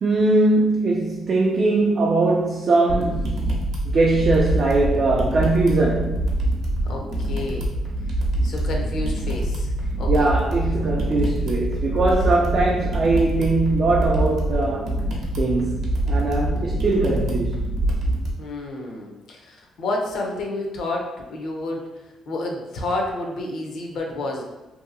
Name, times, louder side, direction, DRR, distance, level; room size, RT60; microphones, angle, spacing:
voice 1, 0.0-6.3 10.1-14.9 15.4-17.6, right 2 dB, 45° right, 0.3 m, -21 dB
sound 1, 2.9-18.3, right 1 dB, 70° right, 0.7 m, -25 dB
voice 2, 6.9-7.7 8.4-10.3 18.4-21.9 22.3-24.4, left 2 dB, 65° left, 0.6 m, -30 dB
2.7 x 2.6 x 2.5 m
cardioid pair, 120°, 0 cm